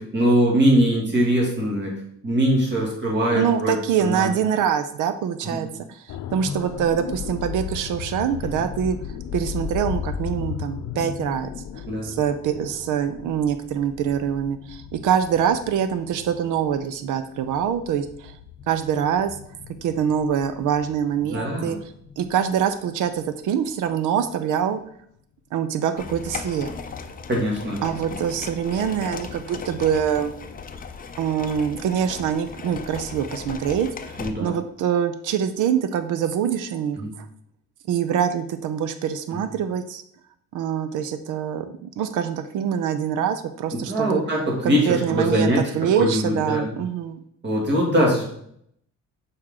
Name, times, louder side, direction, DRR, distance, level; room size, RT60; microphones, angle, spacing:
voice 1, 0.0-2.0 2.2-4.3 5.4-5.6 11.9-12.1 21.2-21.7 27.3-27.8 28.1-28.2 34.2-34.5 37.0-37.1 39.3-39.4 43.7-45.6 46.0-46.8 47.4-48.2, equal, 35° right, -1 dB, 2.2 m, -22 dB
voice 2, 3.3-6.0 6.3-9.0 9.3-11.5 11.7-18.3 18.7-19.4 19.8-21.8 22.2-24.8 25.5-26.7 27.8-30.3 31.2-37.0 37.9-40.0 40.5-44.2 44.6-47.2, right 8 dB, 80° right, 10 dB, 0.6 m, -24 dB
sound 1, 6.1-24.0 24.3-24.5, left 8 dB, 70° left, 0.6 m, -36 dB
sound 2, 26.0-34.3, left 5 dB, 30° left, 0.5 m, -36 dB
6.4 x 4.5 x 3.7 m, 0.68 s
cardioid pair, 115°, 30 cm